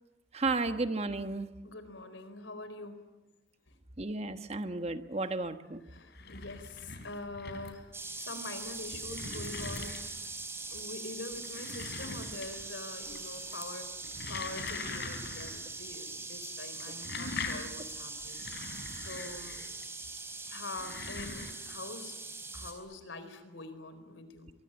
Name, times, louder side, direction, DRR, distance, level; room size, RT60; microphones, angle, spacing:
voice 1, 0.3-1.5 4.0-5.8, right 3 dB, 35° right, 9 dB, 1.2 m, -33 dB
voice 2, 1.6-3.0 3.7-3.8 5.8-7.9 8.1-10.3 10.7-13.9 14.3-19.6 20.4-22.2 22.5-24.5, left 2 dB, 85° left, 10 dB, 4.3 m, -44 dB
sound 1, 6.0-7.9 8.6-10.3 11.3-12.7 13.0-13.5 13.9-15.6 15.9-16.0 16.8-19.9 20.6-21.5, left 4 dB, 60° left, 3.6 m, -42 dB
sound 2, 7.9-22.7, right 3 dB, 15° right, 4.3 m, -42 dB
25.0 x 23.0 x 9.0 m, 1.0 s
head